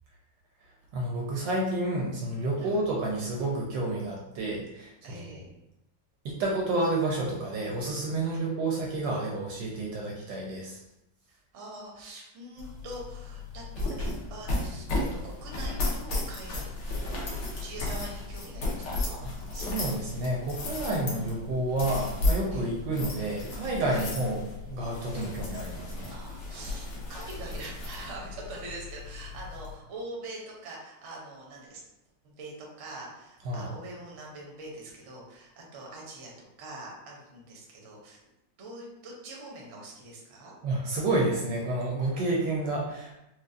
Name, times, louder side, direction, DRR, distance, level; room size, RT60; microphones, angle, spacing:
voice 1, 0.9-5.2 6.2-10.8 19.2-26.1 33.4-33.7 40.6-43.2, right 2 dB, 75° right, -2 dB, 1.1 m, -30 dB
voice 2, 5.0-5.5 8.2-8.4 11.3-19.2 22.5-22.7 23.9-24.1 25.1-25.3 26.1-31.8 32.2-38.2 38.6-40.5, right 2 dB, 60° right, -2 dB, 0.8 m, -44 dB
sound 1, 12.6-29.7, left 2 dB, 65° left, 1.4 m, -34 dB
4.6 x 2.3 x 2.5 m, 0.90 s
omnidirectional pair, 2.3 m